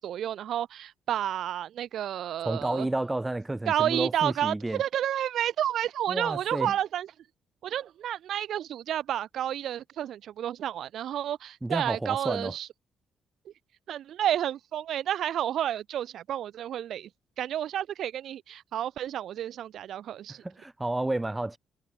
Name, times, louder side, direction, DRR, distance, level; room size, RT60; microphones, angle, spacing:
voice 1, 0.0-2.9 3.7-7.1 7.6-12.7 13.9-17.1 17.4-20.4, right 11 dB, 70° right, 7.2 m, -30 dB
voice 2, 2.4-4.8 6.1-6.7 11.6-12.5 20.3-21.6, right 2 dB, 15° right, 3.2 m, -31 dB
cardioid pair, 90°, 0 cm